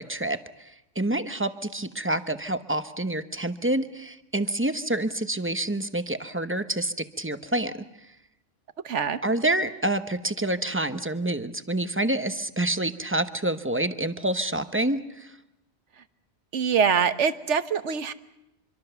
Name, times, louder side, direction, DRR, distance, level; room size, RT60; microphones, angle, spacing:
voice 1, 0.0-7.7 9.2-15.3, right 1 dB, 10° right, 10 dB, 0.9 m, -28 dB
voice 2, 8.8-9.2 16.5-18.1, right 6 dB, 75° right, 12 dB, 1.4 m, -24 dB
25.5 x 24.5 x 6.9 m, 0.88 s
omnidirectional pair, 1.2 m